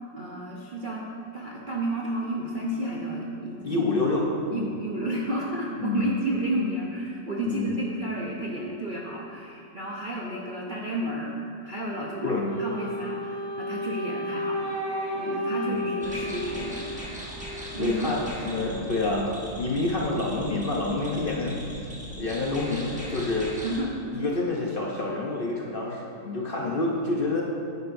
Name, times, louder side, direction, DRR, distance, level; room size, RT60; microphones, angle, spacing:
voice 1, 0.1-1.0 1.3-3.8 4.5-11.3 11.6-17.1 17.7-18.1 18.6-18.9 23.6-24.1, right 1 dB, 55° right, -3 dB, 0.5 m, -32 dB
voice 2, 3.6-4.7 5.8-6.1 7.5-7.7 12.2-12.5 15.6-15.8 17.8-21.9 22.2-23.5 24.1-27.4, left 2 dB, 50° left, -2 dB, 0.6 m, -28 dB
Wind instrument woodwind instrument, 12.4-17.5, equal, 15° left, 1.8 m, -32 dB
sound 1, 16.0-23.8, equal, 5° right, 1.0 m, -40 dB
9.7 x 9.1 x 2.6 m, 2.5 s
omnidirectional pair, 1.8 m